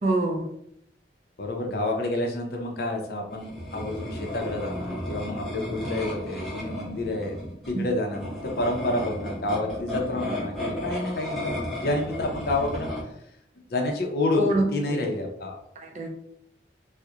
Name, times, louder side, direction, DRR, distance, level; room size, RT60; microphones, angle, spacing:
voice 1, 0.0-0.4 14.3-15.0 15.8-16.1, right 1 dB, 40° right, 2 dB, 0.4 m, -25 dB
voice 2, 1.4-7.4 7.7-11.5 11.8-12.9 13.7-14.4 14.7-15.6, left 2 dB, 60° left, 2 dB, 0.5 m, -29 dB
sound 1, 3.3-13.0, left 1 dB, ahead, 0.6 m, -34 dB
2.7 x 2.0 x 2.3 m, 0.73 s
head